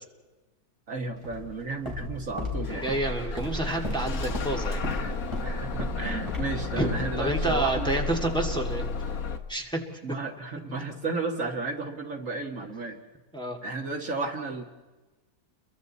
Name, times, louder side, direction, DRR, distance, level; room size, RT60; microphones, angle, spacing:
voice 1, 0.9-2.8 3.3-3.4 3.6-3.9 4.9-5.2 5.4-8.0 10.0-13.0 13.6-14.6, right 3 dB, 55° right, 3 dB, 2.1 m, -33 dB
Walk footsteps, 1.2-9.1, equal, 20° right, 4.3 m, -35 dB
Bus / Engine starting, 2.6-9.4, left 4 dB, 65° left, 1.7 m, -34 dB
voice 2, 2.7-4.8 6.8-6.9 7.2-8.9 9.5-9.8 13.3-13.6, right 1 dB, 5° left, 1 dB, 2.3 m, -29 dB
30.0 x 23.0 x 4.2 m, 1.2 s
omnidirectional pair, 1.6 m